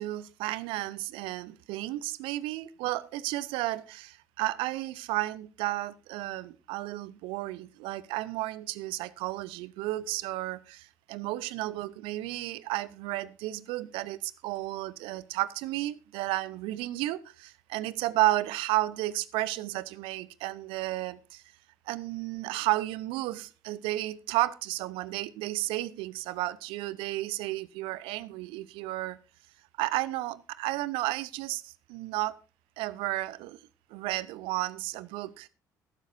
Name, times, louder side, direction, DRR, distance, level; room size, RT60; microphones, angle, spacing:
voice 1, 0.0-21.4 21.9-29.2 29.8-32.4 32.8-33.6 33.9-35.5, right 17 dB, 65° right, 0.7 m, -32 dB
15.0 x 12.0 x 2.6 m
figure-of-eight pair, 50°, 9 cm